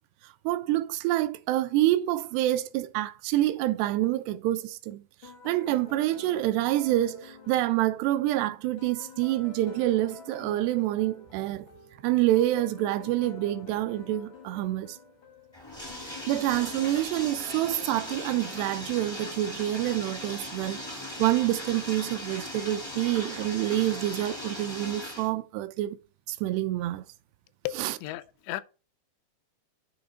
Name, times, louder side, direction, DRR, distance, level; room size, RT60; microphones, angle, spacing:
voice 1, 0.5-5.0 5.5-11.7 12.0-15.0 16.3-26.0 26.3-27.0 27.8-27.9, right 15 dB, 85° right, 2.6 m, -27 dB
sound 1, 5.2-19.4, left 4 dB, 70° left, 1.1 m, -49 dB
Bathtub (filling or washing), 15.5-25.3, left 1 dB, 40° left, 0.4 m, -39 dB
voice 2, 27.6-28.6, left 16 dB, 85° left, 2.7 m, -35 dB
10.5 x 3.5 x 5.0 m
omnidirectional pair, 4.9 m